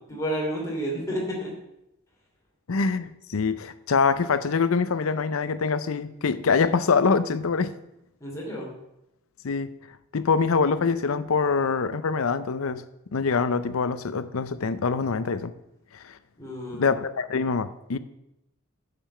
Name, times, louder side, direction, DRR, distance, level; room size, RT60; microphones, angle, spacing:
voice 1, 0.1-1.5 8.2-8.7 16.4-16.9, equal, 15° left, 2.9 m, -30 dB
voice 2, 2.7-7.7 9.4-9.7 10.1-12.8 13.1-15.5 16.0-16.1 16.7-18.0, left 5 dB, 80° left, 0.6 m, -24 dB
9.1 x 6.8 x 5.6 m
head